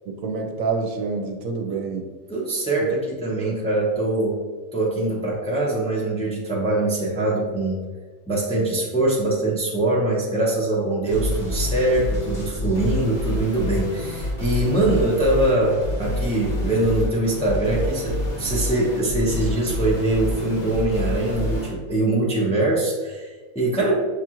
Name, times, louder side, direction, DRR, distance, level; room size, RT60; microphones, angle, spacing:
voice 1, 0.1-2.1 2.8-2.9, right 4 dB, 75° right, 4 dB, 1.0 m, -27 dB
voice 2, 2.3-4.4 4.7-7.8 8.3-23.9, right 2 dB, 5° left, -5 dB, 0.6 m, -23 dB
sound 1, 11.0-21.7, left 1 dB, 35° left, 1.0 m, -28 dB
6.5 x 2.5 x 2.9 m, 1.3 s
omnidirectional pair, 1.4 m